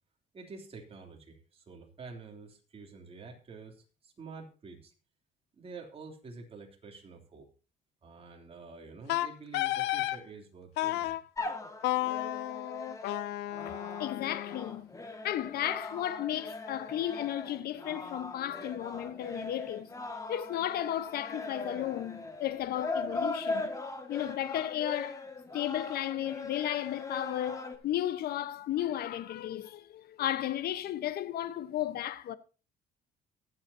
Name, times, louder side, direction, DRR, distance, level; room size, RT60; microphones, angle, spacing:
voice 1, 0.3-4.9 5.6-7.5 8.0-11.1, right 4 dB, 35° right, 3.1 m, -48 dB
Wind instrument woodwind instrument, 9.1-10.2 10.8-11.2 11.8-14.8, left 16 dB, 90° left, 0.7 m, -32 dB
sound 1, 11.4-27.8, left 3 dB, 20° left, 1.9 m, -40 dB
voice 2, 13.6-14.9 15.2-19.9 20.3-23.7 24.1-25.2 25.5-32.4, left 12 dB, 65° left, 1.1 m, -34 dB
22.5 x 8.0 x 2.8 m
cardioid pair, 110°, 17 cm